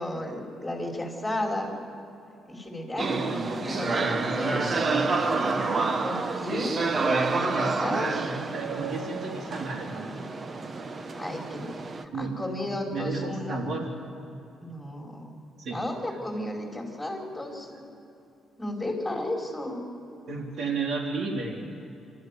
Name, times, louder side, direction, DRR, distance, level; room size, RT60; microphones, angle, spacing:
voice 1, 0.0-1.8 2.5-4.7 6.0-6.8 7.3-8.1 11.2-11.7 12.2-13.6 14.6-15.4 15.7-17.9 18.6-19.9, left 1 dB, 5° left, 0 dB, 5.1 m, -33 dB
voice 2, 2.9-5.6 7.1-10.1 12.1-12.4 12.9-13.9 15.6-15.8 20.3-21.6, right 3 dB, 65° right, 1 dB, 3.6 m, -33 dB
sound 1, 3.0-12.0, right 3 dB, 35° right, 1.1 m, -29 dB
26.0 x 13.5 x 9.6 m, 2.8 s
cardioid pair, 90°, 0 cm